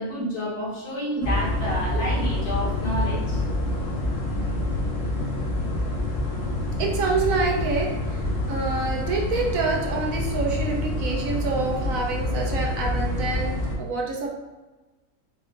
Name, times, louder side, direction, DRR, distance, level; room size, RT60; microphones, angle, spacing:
voice 1, 0.0-3.4, equal, 90° left, -6 dB, 1.9 m, -29 dB
sound 1, 1.2-13.7, left 1 dB, 30° left, 0.8 m, -27 dB
voice 2, 6.8-14.3, right 4 dB, 65° right, 0 dB, 1.1 m, -27 dB
4.1 x 2.4 x 3.8 m, 1.2 s
omnidirectional pair, 1.6 m